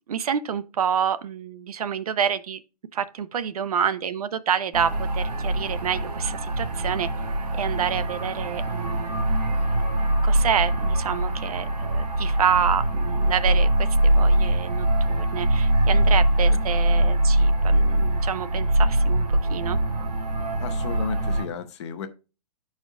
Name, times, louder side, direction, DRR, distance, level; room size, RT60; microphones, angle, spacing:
voice 1, 0.1-2.6 2.9-9.4 10.2-19.8, right 8 dB, 65° right, 0.6 m, -28 dB
sound 1, 4.7-21.5, right 1 dB, 85° right, 1.3 m, -23 dB
voice 2, 20.6-22.1, left 7 dB, 45° left, 0.8 m, -33 dB
11.5 x 4.3 x 2.3 m
hypercardioid pair, 145°, 20 cm